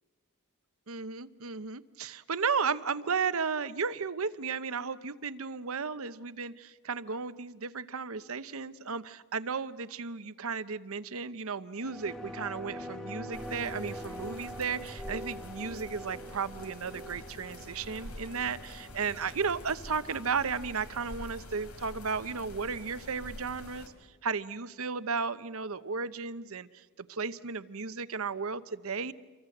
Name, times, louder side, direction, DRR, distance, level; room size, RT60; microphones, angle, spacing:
voice 1, 0.9-23.9 24.2-29.1, right 5 dB, 65° right, 14 dB, 0.9 m, -34 dB
sound 1, 11.8-20.8 21.1-21.2, equal, ahead, 1.9 m, -44 dB
sound 2, 13.3-23.9, left 1 dB, 85° left, 3.7 m, -47 dB
28.5 x 23.5 x 7.9 m, 1.3 s
head